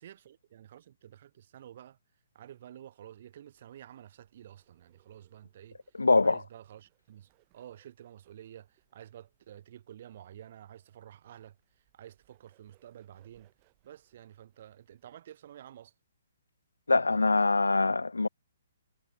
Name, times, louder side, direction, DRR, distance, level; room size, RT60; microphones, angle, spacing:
voice 1, 0.0-2.0 2.3-11.6 11.9-13.5 13.8-15.9, right 11 dB, 45° right, 3.0 m, -51 dB
Bird, 3.5-15.1, right 32 dB, 30° right, 6.6 m, -73 dB
voice 2, 6.0-6.4 16.9-18.3, left 3 dB, 75° left, 0.3 m, -24 dB
figure-of-eight pair, 125°, 0 cm